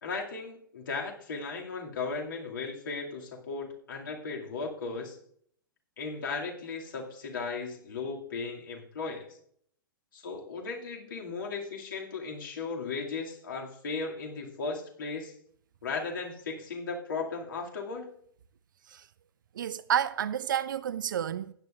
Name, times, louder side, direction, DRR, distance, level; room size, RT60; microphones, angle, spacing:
voice 1, 0.0-5.2 6.0-9.3 10.1-15.3 15.8-18.1, left 4 dB, 65° left, 2.3 m, -36 dB
voice 2, 19.5-21.5, right 9 dB, 60° right, 0.5 m, -30 dB
15.5 x 9.9 x 2.5 m
figure-of-eight pair, 105°, 12 cm